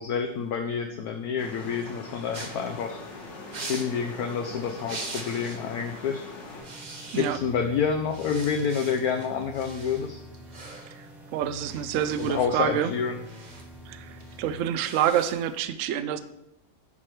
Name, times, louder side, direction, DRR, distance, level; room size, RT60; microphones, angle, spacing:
voice 1, 0.0-3.0 3.7-6.2 7.2-10.2 12.2-13.2, left 6 dB, 65° left, 4 dB, 1.0 m, -28 dB
sound 1, 1.4-6.6, left 3 dB, 85° left, 2.4 m, -42 dB
sound 2, 2.3-5.7 6.0-6.2 6.5-7.7 8.0-15.6, right 3 dB, 35° right, 0.7 m, -43 dB
sound 3, 6.6-14.6, equal, ahead, 0.7 m, -47 dB
voice 2, 11.3-12.9 13.9-16.2, right 10 dB, 75° right, 11 dB, 0.7 m, -27 dB
9.7 x 4.7 x 4.6 m, 0.86 s
omnidirectional pair, 1.9 m